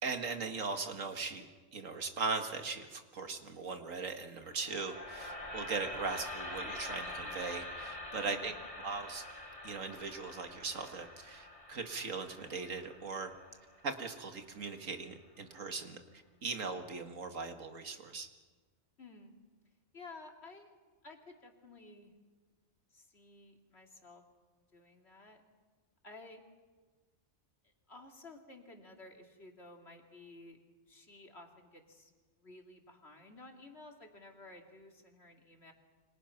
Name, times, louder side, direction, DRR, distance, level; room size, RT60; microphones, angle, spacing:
voice 1, 0.0-1.5 1.7-8.5 8.8-9.2 9.6-13.3 13.8-16.0 16.4-18.3, right 4 dB, 85° right, 6 dB, 2.2 m, -39 dB
sound 1, 4.4-14.5, left 1 dB, 25° left, 2.6 m, -45 dB
voice 2, 8.2-8.6 19.0-19.3 19.9-20.7 21.0-22.1 22.9-24.2 24.7-25.4 26.0-26.4 27.9-30.6 30.9-32.1 32.4-35.7, left 2 dB, 55° left, 2 dB, 3.0 m, -54 dB
28.5 x 25.0 x 5.9 m, 1.4 s
omnidirectional pair, 1.3 m